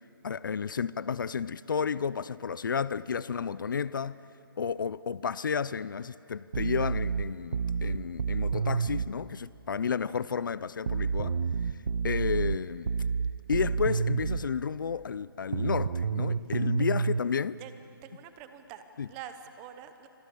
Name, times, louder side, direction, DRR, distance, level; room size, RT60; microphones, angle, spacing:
voice 1, 0.2-4.2 4.6-11.4 12.0-12.9 13.5-17.6 19.0-19.1, left 6 dB, 60° left, 0.6 m, -32 dB
sound 1, 6.5-9.1 10.9-14.5 15.5-17.2, right 5 dB, 50° right, 0.9 m, -29 dB
voice 2, 9.9-10.3 17.6-17.7 18.0-20.1, right 9 dB, 15° right, 0.9 m, -46 dB
27.5 x 25.0 x 8.5 m
hypercardioid pair, 170°, 12 cm